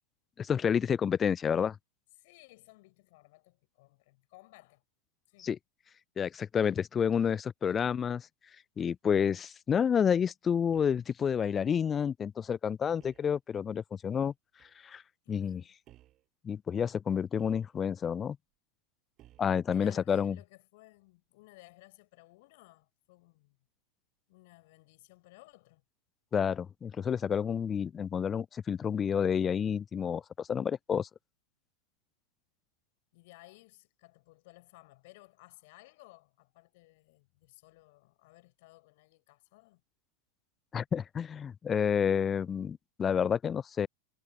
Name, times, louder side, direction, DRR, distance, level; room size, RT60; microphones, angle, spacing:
voice 1, 0.4-1.8 5.4-5.6 6.2-8.3 8.8-14.3 14.8-15.0 15.3-15.6 16.4-18.4 19.4-20.4 26.3-31.1 40.7-43.9, left 7 dB, 20° left, 0.3 m, -29 dB
voice 2, 2.2-4.8 5.3-5.5 15.2-15.7 19.7-23.6 24.3-25.8 33.1-39.8, left 22 dB, 50° left, 7.0 m, -57 dB
sound 1, 10.7-11.1 13.0-13.3 14.6-14.8 15.8-16.3 17.4-18.0 19.2-19.6, right 14 dB, 35° right, 5.0 m, -60 dB
figure-of-eight pair, 90°, 0 cm